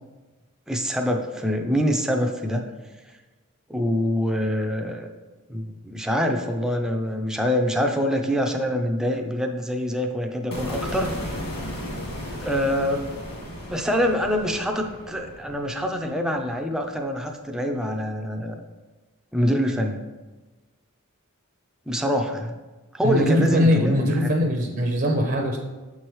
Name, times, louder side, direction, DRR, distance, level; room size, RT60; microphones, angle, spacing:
voice 1, 0.7-2.6 3.7-5.1 5.5-11.1 12.4-13.1 13.7-18.6 19.3-20.0 21.9-22.6 22.9-24.1, equal, 5° right, 3 dB, 0.4 m, -25 dB
sound 1, 10.5-16.7, equal, 45° left, 1.8 m, -35 dB
voice 2, 23.0-25.6, equal, 45° right, 2 dB, 0.6 m, -21 dB
6.9 x 4.7 x 3.1 m, 1.2 s
head